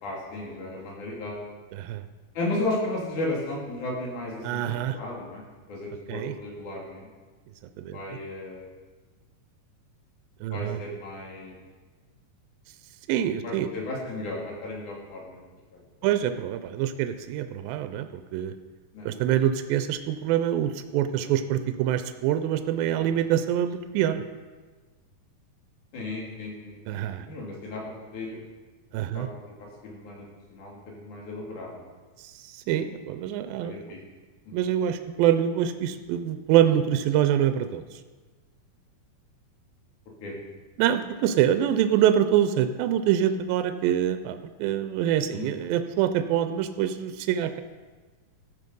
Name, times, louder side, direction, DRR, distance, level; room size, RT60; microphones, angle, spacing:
voice 1, 0.0-1.4 2.4-7.1 7.9-8.7 10.5-11.6 13.4-15.4 15.7-15.8 18.9-19.1 25.9-27.8 28.1-28.4 29.1-31.9 33.6-34.0 34.5-34.7 40.2-40.4 45.3-45.5, left 2 dB, 60° left, -2 dB, 3.5 m, -35 dB
voice 2, 1.7-2.0 4.4-5.0 6.1-6.3 7.8-8.0 10.4-10.8 13.1-13.7 16.0-18.5 19.1-24.2 26.9-27.3 28.9-29.3 32.2-33.8 34.5-37.8 40.8-47.6, right 10 dB, 85° right, 9 dB, 2.3 m, -25 dB
14.5 x 6.1 x 5.4 m, 1.3 s
omnidirectional pair, 4.2 m